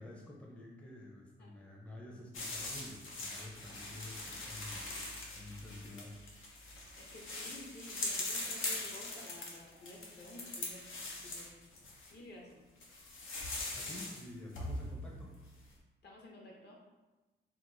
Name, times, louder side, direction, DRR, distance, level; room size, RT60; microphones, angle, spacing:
voice 1, 0.0-4.9 5.3-6.2 13.7-15.3, left 1 dB, 5° left, -2 dB, 0.5 m, -49 dB
sound 1, 2.3-12.1 12.8-14.3 14.5-15.4, left 2 dB, 90° left, 0.9 m, -42 dB
voice 2, 6.9-10.9 11.1-11.6 12.1-12.6 16.0-16.8, left 1 dB, 55° left, -2 dB, 1.0 m, -52 dB
4.6 x 2.0 x 3.8 m, 1.2 s
wide cardioid pair, 125°, 20 cm